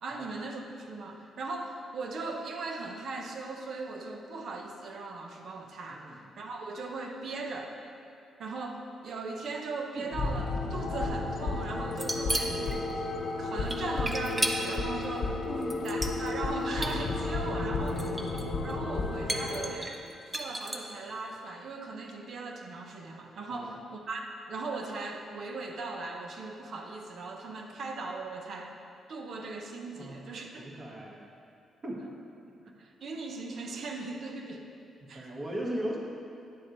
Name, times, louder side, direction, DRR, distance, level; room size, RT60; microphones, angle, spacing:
voice 1, 0.0-7.7 8.4-13.1 13.4-15.4 15.8-18.1 18.6-20.0 20.3-28.8 29.1-30.7 32.8-34.7 35.1-35.3, right 3 dB, 55° right, 2 dB, 0.8 m, -38 dB
sound 1, 10.0-19.7, left 3 dB, 60° left, 0.9 m, -32 dB
sound 2, 11.9-12.8 13.7-14.8 15.6-16.5 16.8-17.0 17.9-18.4 18.7-18.8 19.3-20.9, right 1 dB, 15° right, 0.6 m, -33 dB
voice 2, 15.5-15.8 23.5-23.8 29.9-30.2 30.6-31.3 31.8-32.0 35.0-36.0, right 1 dB, 30° right, -3 dB, 1.4 m, -37 dB
9.2 x 7.6 x 3.0 m, 2.6 s
cardioid pair, 125°, 0 cm